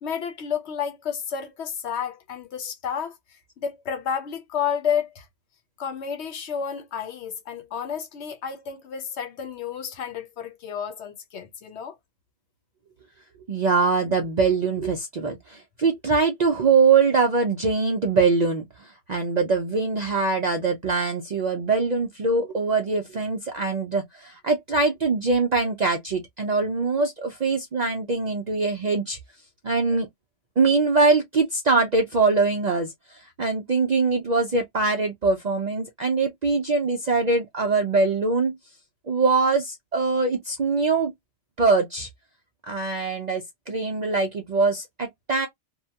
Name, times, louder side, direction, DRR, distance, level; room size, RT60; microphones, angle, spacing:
voice 1, 0.0-5.3 5.8-11.9, left 7 dB, 65° left, 0.9 m, -31 dB
voice 2, 13.5-18.7 19.1-29.2 29.6-30.1 30.6-32.9 33.4-38.5 39.1-41.1 41.6-42.1 42.7-45.5, right 4 dB, 55° right, 0.4 m, -23 dB
2.8 x 2.2 x 2.7 m
omnidirectional pair, 1.3 m